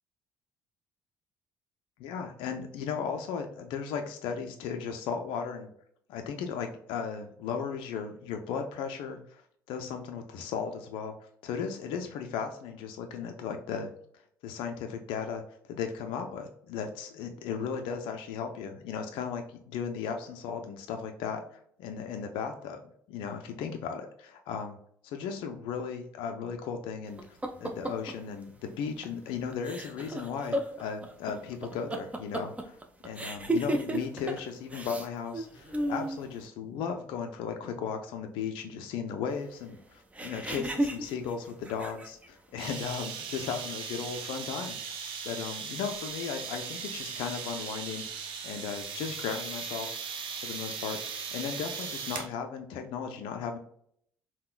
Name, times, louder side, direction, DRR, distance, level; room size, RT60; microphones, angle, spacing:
voice 1, 2.0-5.7 6.1-9.4 9.7-22.8 23.1-24.8 25.0-32.8 33.0-44.8 45.2-49.9 50.4-51.0 51.3-53.6, left 6 dB, 65° left, 5 dB, 0.4 m, -36 dB
sound 1, 27.2-28.1 29.0-29.3 29.5-34.4 34.7-35.1 35.3-36.2 40.1-42.3, right 1 dB, 15° right, 0.6 m, -33 dB
sound 2, 42.6-52.3, right 6 dB, 60° right, 0.6 m, -38 dB
3.6 x 2.1 x 2.3 m, 0.66 s
hypercardioid pair, 55°, 10 cm